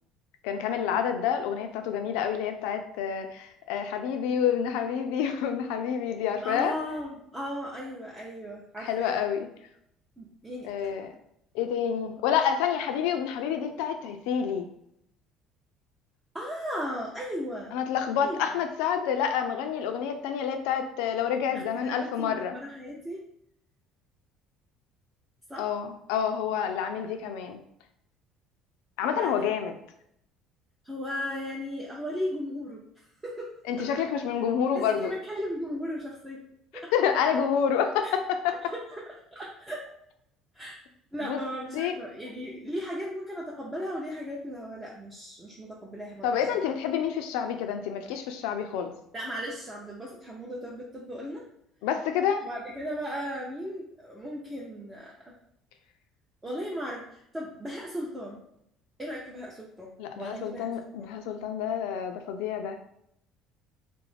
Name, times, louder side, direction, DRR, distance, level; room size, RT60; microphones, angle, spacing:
voice 1, 0.4-6.7 8.8-9.5 10.6-11.1 11.5-14.7 17.7-22.6 25.6-27.6 29.0-29.8 33.7-35.1 36.9-38.7 41.2-41.4 41.7-41.9 46.2-48.9 51.8-52.4 60.0-62.8, left 8 dB, 85° left, 6 dB, 0.3 m, -28 dB
voice 2, 6.4-9.2 10.2-10.9 16.3-17.8 18.2-18.6 21.5-23.2 25.5-25.7 29.1-29.5 30.8-33.5 34.7-36.4 36.7-36.9 38.0-38.1 38.6-39.0 39.3-39.8 40.5-40.8 41.1-46.6 49.1-51.4 52.4-55.3 56.4-58.4 59.0-59.9 60.2-60.7, equal, 15° right, -5 dB, 0.6 m, -36 dB
2.4 x 2.0 x 3.2 m, 0.75 s
supercardioid pair, 95°, 0 cm